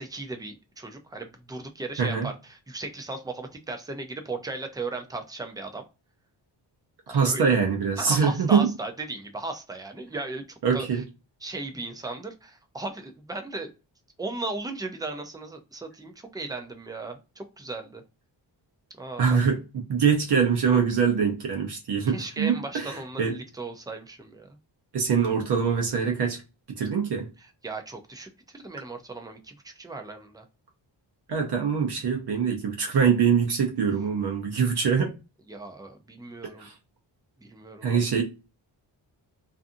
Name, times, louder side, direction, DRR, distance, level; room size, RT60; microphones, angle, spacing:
voice 1, 0.0-5.8 7.1-7.5 8.0-10.4 10.7-11.0 11.4-13.7 14.2-18.0 19.0-19.4 22.1-24.6 27.4-30.4 35.5-36.7 37.4-38.2, right 3 dB, 10° right, 0.3 m, -36 dB
voice 2, 2.0-2.3 7.1-8.7 10.6-11.0 19.2-19.6 19.9-23.3 24.9-26.4 26.7-27.3 31.3-35.1 36.6-36.7 37.8-38.2, right 6 dB, 60° right, 0.6 m, -23 dB
2.5 x 2.5 x 2.4 m
wide cardioid pair, 160°, 46 cm